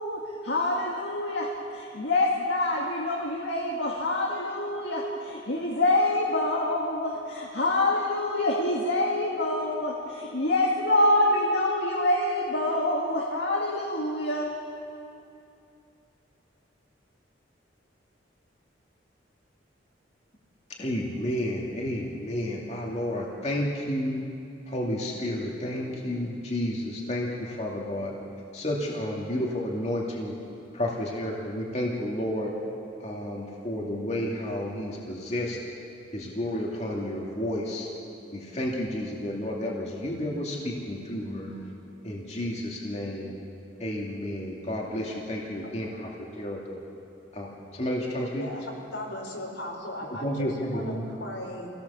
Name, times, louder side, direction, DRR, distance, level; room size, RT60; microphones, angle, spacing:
voice 1, 0.0-14.5, left 1 dB, 65° left, -2 dB, 2.1 m, -26 dB
voice 2, 20.8-24.2 24.7-28.1 28.5-30.4 30.7-32.5 33.0-35.6 36.1-37.9 38.3-41.7 42.0-43.4 43.8-46.8 47.3-48.5 50.1-51.1, left 1 dB, 35° left, -2 dB, 2.4 m, -31 dB
voice 3, 48.4-51.7, left 1 dB, 85° left, 0 dB, 4.5 m, -37 dB
25.5 x 17.5 x 7.1 m, 2.7 s
head